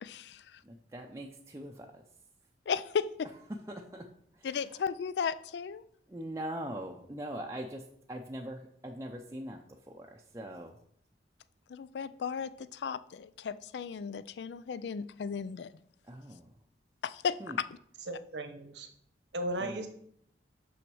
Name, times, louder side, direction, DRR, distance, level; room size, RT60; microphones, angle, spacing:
voice 1, 0.0-0.6 2.7-3.3 4.4-5.8 11.7-15.7 17.0-17.7, left 6 dB, 75° left, 15 dB, 0.4 m, -35 dB
voice 2, 0.6-2.0 3.5-4.5 6.1-10.8 16.1-16.5 17.4-17.6 19.6-19.9, right 1 dB, 15° right, 1 dB, 0.5 m, -42 dB
voice 3, 18.1-18.9 19.3-19.9, right 1 dB, 90° right, 7 dB, 1.2 m, -36 dB
6.3 x 6.0 x 6.1 m, 0.68 s
head